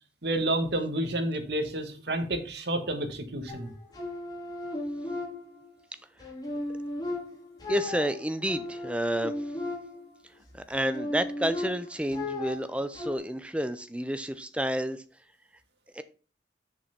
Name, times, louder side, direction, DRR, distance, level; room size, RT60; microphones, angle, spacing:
voice 1, 0.2-3.7, right 1 dB, 65° right, 7 dB, 1.6 m, -30 dB
sound 1, 3.5-5.8 6.2-10.2 10.7-13.2, left 2 dB, 20° left, 2.8 m, -36 dB
voice 2, 7.7-9.5 10.5-15.0 15.9-16.0, equal, 5° right, 11 dB, 0.5 m, -30 dB
6.9 x 5.6 x 5.9 m, 0.38 s
head